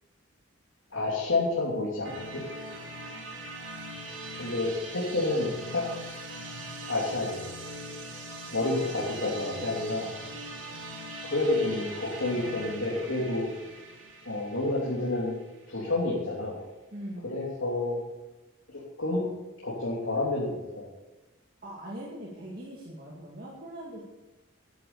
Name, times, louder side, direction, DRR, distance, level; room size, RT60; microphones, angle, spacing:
voice 1, 0.9-2.4 4.4-5.8 6.9-7.5 8.5-10.1 11.3-13.5 14.2-15.4 15.7-16.6 17.2-18.0 18.7-19.2 19.6-20.8, left 2 dB, 70° left, -5 dB, 3.1 m, -29 dB
sound 1, 2.0-15.8, right 1 dB, 60° right, 3.6 m, -41 dB
voice 2, 16.9-17.3 21.6-24.0, right 1 dB, 45° right, -4 dB, 2.4 m, -41 dB
12.5 x 10.5 x 7.0 m, 1.1 s
head